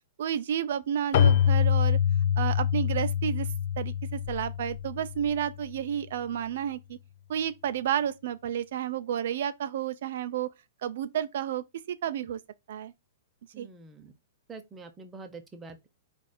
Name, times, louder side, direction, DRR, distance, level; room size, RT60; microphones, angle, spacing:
voice 1, 0.2-2.0 2.4-3.5 3.8-7.0 7.3-10.5 10.8-12.4 12.7-12.9 13.6-13.7, right 9 dB, 55° right, 0.4 m, -31 dB
Keyboard (musical), 1.1-5.6, left 8 dB, 45° left, 0.5 m, -25 dB
voice 2, 13.5-14.1 14.5-15.9, right 4 dB, 10° right, 0.6 m, -45 dB
4.8 x 2.4 x 4.2 m
hypercardioid pair, 175°, 0 cm